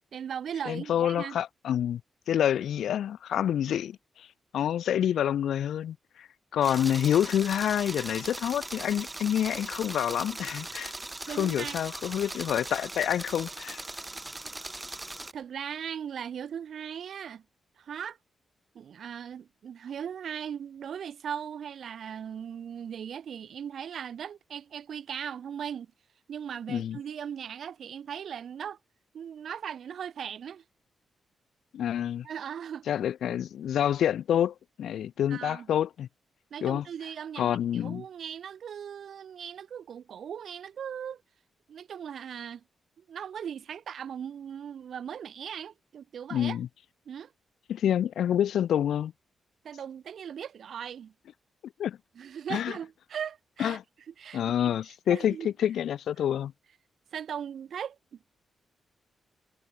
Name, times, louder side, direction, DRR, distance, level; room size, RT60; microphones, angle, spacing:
voice 1, 0.1-1.4 3.4-3.7 11.3-11.8 15.3-17.4 17.8-18.2 18.7-25.9 26.3-28.8 29.1-30.6 32.2-32.9 33.3-33.4 35.3-35.7 36.5-41.2 41.7-42.6 43.0-46.6 47.1-47.3 49.6-51.1 52.1-53.8 54.2-54.7 55.1-55.5 57.1-58.2, right 8 dB, 70° right, 1.2 m, -38 dB
voice 2, 0.7-2.0 2.3-4.3 4.5-10.9 11.3-13.8 26.7-27.0 31.7-32.3 32.9-36.1 36.6-36.9 37.4-38.0 46.3-46.7 47.7-49.1 51.8-52.0 52.5-52.8 53.6-53.8 54.3-56.5, left 10 dB, 85° left, 0.4 m, -28 dB
sound 1, 6.6-15.3, right 2 dB, 15° right, 0.6 m, -40 dB
cardioid pair, 105°, 0 cm